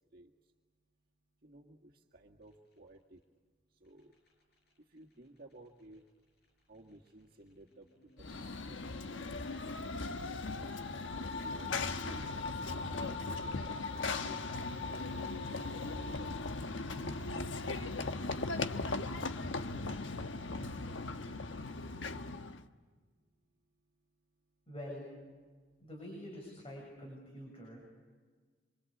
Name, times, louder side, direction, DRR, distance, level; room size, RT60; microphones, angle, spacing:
voice 1, 1.4-3.2 3.8-4.1 4.9-6.0 6.7-7.9 8.2-8.4 8.7-10.0 11.2-12.3 13.0-15.2 15.5-16.4, right 1 dB, 50° right, -1 dB, 1.9 m, -55 dB
sound 1, 2.4-3.2 3.8-16.1 16.7-17.2 17.9-18.9, left 1 dB, 55° left, 7.5 m, -65 dB
Run / Train, 8.2-22.6, left 3 dB, 90° left, 1.2 m, -38 dB
voice 2, 24.7-25.1 25.8-27.8, equal, 30° left, -1 dB, 7.0 m, -46 dB
26.0 x 26.0 x 8.5 m, 1.5 s
head